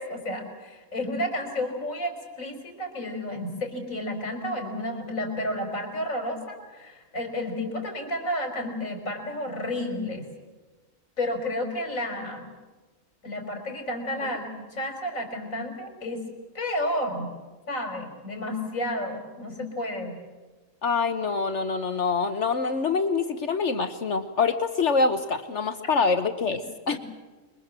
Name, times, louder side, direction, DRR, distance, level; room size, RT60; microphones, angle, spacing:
voice 1, 0.0-10.2 11.2-12.5 13.2-16.2 16.5-17.3 17.7-20.2 26.9-27.0, left 1 dB, 85° left, 4 dB, 5.0 m, -31 dB
voice 2, 20.8-27.0, left 4 dB, 65° left, 10 dB, 1.3 m, -25 dB
27.0 x 23.5 x 7.4 m, 1.3 s
omnidirectional pair, 1.4 m